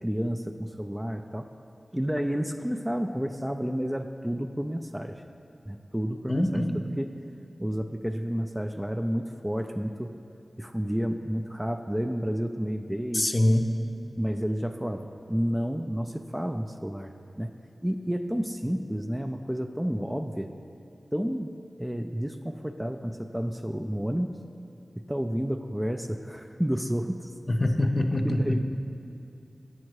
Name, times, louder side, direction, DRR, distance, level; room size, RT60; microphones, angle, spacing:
voice 1, 0.0-1.5 1.9-5.2 5.7-6.6 7.0-7.1 7.6-10.1 10.6-13.3 14.2-17.5 17.8-20.5 21.1-21.5 21.8-24.3 25.0-27.3 28.2-28.6, equal, 10° right, 5 dB, 0.4 m, -30 dB
voice 2, 6.3-6.8 13.1-13.7 27.5-28.6, left 1 dB, 35° left, 5 dB, 0.6 m, -24 dB
8.3 x 6.4 x 4.7 m, 2.7 s
cardioid pair, 45°, 0 cm